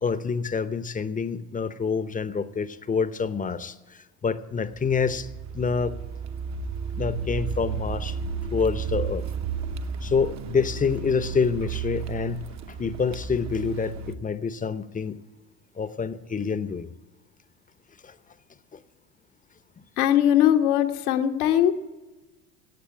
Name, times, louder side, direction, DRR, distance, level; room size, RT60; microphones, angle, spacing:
voice 1, 0.0-5.3 5.5-6.0 7.0-8.2 8.5-9.2 10.0-12.4 12.7-15.2 15.8-16.9 18.0-18.1 18.7-18.8, left 5 dB, 15° left, 14 dB, 0.8 m, -27 dB
Car, 4.7-14.2, right 6 dB, 35° right, 0.9 m, -33 dB
voice 2, 20.0-21.7, left 11 dB, 70° left, 8 dB, 1.3 m, -20 dB
14.5 x 8.7 x 8.8 m, 1.2 s
hypercardioid pair, 75°, 46 cm